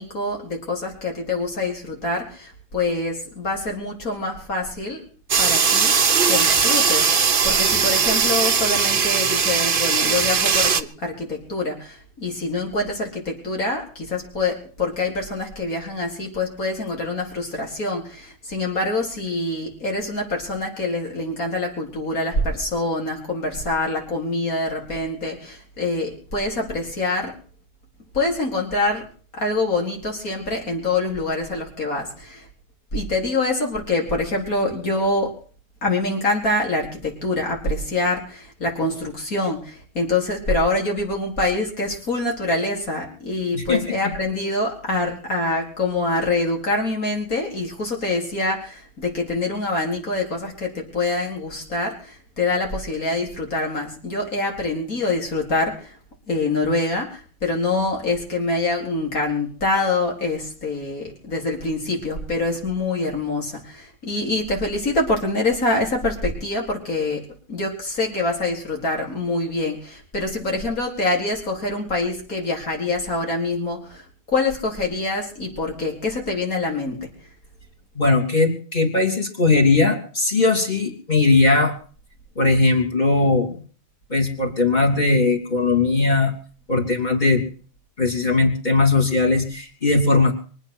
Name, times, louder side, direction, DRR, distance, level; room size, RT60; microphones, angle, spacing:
voice 1, 0.0-5.0 5.4-5.9 6.3-27.3 28.1-29.1 29.3-32.5 32.9-35.3 35.8-56.0 56.3-74.0 74.3-77.1, left 2 dB, 85° left, 0 dB, 4.8 m, -25 dB
sound 1, 5.3-10.8, right 6 dB, 45° right, 1.0 m, -19 dB
voice 2, 43.5-44.0 77.9-81.7 82.4-83.6 84.1-86.3 86.7-87.5 88.0-90.3, left 3 dB, 30° left, 2 dB, 3.2 m, -19 dB
24.0 x 9.3 x 6.3 m, 0.43 s
omnidirectional pair, 1.5 m